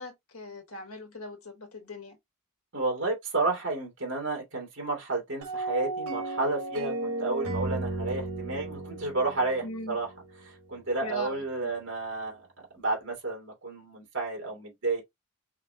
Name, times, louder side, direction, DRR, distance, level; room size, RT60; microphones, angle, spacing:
voice 1, 0.0-2.2 9.6-10.0 11.0-11.7, left 1 dB, 75° left, 1.6 m, -40 dB
voice 2, 2.7-10.1 10.4-12.5 12.7-15.0, right 3 dB, 60° right, 2.4 m, -31 dB
sound 1, 5.4-10.6, right 2 dB, 85° right, 1.3 m, -34 dB
4.9 x 3.3 x 2.7 m
head